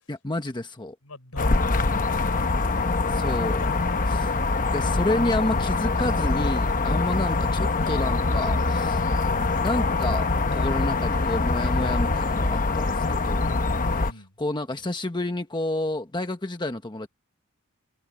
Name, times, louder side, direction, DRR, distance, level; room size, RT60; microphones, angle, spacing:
voice 1, 0.1-1.0 3.1-3.7 4.1-4.4 4.7-9.0 9.6-10.3 10.5-13.5 14.4-17.1, left 1 dB, 20° left, 1.2 m, -29 dB
voice 2, 1.0-2.5 3.1-3.7 13.4-14.3, left 2 dB, 75° left, 4.2 m, -42 dB
sound 1, 1.4-14.1, left 3 dB, 40° left, 1.0 m, -24 dB
head